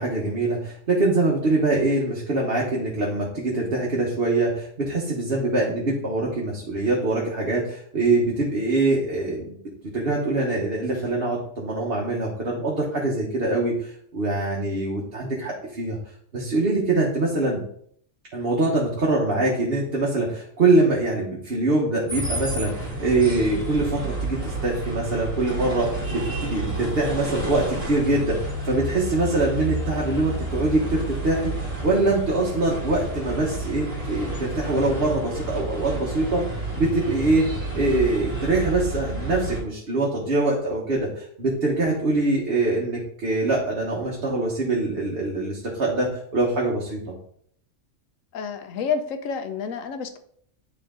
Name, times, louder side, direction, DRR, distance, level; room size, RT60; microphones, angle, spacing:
voice 1, 0.0-9.6 9.9-16.0 16.3-17.6 18.3-36.4 36.7-37.5 37.7-47.0, right 2 dB, 50° right, -3 dB, 1.4 m, -24 dB
sound 1, 22.1-39.6, right 1 dB, 25° right, 2.0 m, -30 dB
voice 2, 48.3-50.2, left 6 dB, 90° left, 8 dB, 1.1 m, -29 dB
9.4 x 3.8 x 3.8 m, 0.64 s
omnidirectional pair, 1.3 m